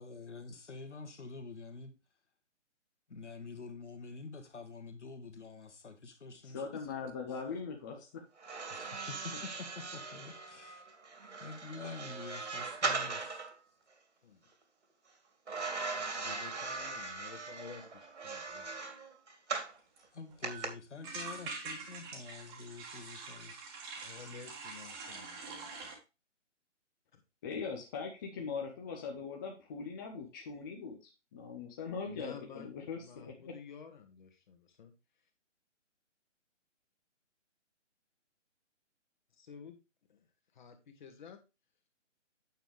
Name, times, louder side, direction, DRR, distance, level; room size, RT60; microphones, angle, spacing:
voice 1, 0.0-1.9 3.1-6.9 7.3-7.4 8.7-10.8 11.4-13.5 20.1-23.7, left 4 dB, 65° left, 2.0 m, -47 dB
voice 2, 6.5-8.2 27.4-31.0 31.3-33.5, left 5 dB, 15° left, 0.8 m, -41 dB
sound 1, 8.4-13.5 15.5-19.8 20.4-20.7, right 4 dB, 65° right, 2.5 m, -39 dB
voice 3, 15.9-18.7 24.0-26.0 27.1-27.2 32.0-32.7 33.0-34.9 39.3-39.8 40.1-40.3 40.5-41.4, left 6 dB, 40° left, 2.0 m, -52 dB
sound 2, 19.6-19.7 20.0-20.1 20.3-20.5 21.0-25.9, right 4 dB, 15° right, 1.6 m, -45 dB
9.0 x 7.0 x 3.4 m
figure-of-eight pair, 145°, 37 cm